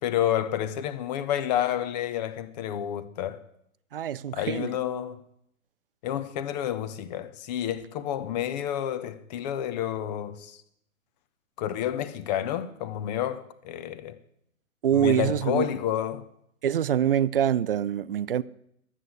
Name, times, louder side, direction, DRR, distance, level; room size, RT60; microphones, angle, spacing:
voice 1, 0.0-3.4 4.3-5.2 6.0-10.6 11.6-14.1 14.9-16.3, left 10 dB, 30° left, 0.9 m, -29 dB
voice 2, 3.9-4.7 14.8-15.7 16.6-18.4, right 9 dB, 45° right, 0.4 m, -25 dB
12.5 x 8.2 x 7.8 m
figure-of-eight pair, 115°, 43 cm